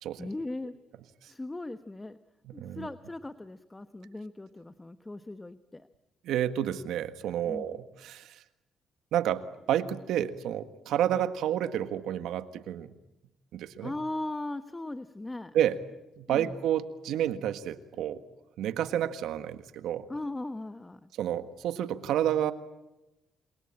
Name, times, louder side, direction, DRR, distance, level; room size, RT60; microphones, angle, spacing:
voice 1, 0.2-0.7 1.2-2.2 2.5-5.9 7.5-7.7 13.8-15.5 16.3-16.5 20.1-21.1, left 2 dB, 15° left, 12 dB, 1.0 m, -38 dB
voice 2, 2.5-2.9 6.2-8.4 9.1-12.9 13.5-13.9 15.5-15.8 16.2-18.2 18.6-20.1 21.2-22.5, right 10 dB, 85° right, 11 dB, 1.6 m, -30 dB
28.5 x 22.5 x 8.8 m, 0.98 s
cardioid pair, 90°, 0 cm